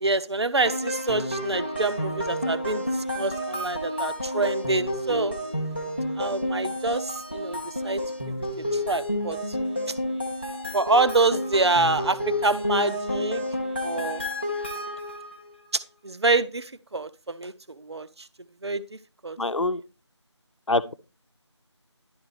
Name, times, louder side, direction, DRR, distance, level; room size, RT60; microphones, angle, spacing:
voice 1, 0.0-2.8 3.2-5.3 6.2-8.0 8.3-8.4 8.7-9.4 10.7-13.4 13.8-14.2 16.0-17.5 17.9-18.3 18.6-18.8 19.2-19.4, right 3 dB, 60° right, 0.6 m, -26 dB
sound 1, 0.6-15.3, left 1 dB, 20° left, 0.7 m, -30 dB
voice 2, 19.4-19.8 20.7-20.9, left 2 dB, 85° left, 0.8 m, -24 dB
11.5 x 3.9 x 4.7 m
figure-of-eight pair, 175°, 15 cm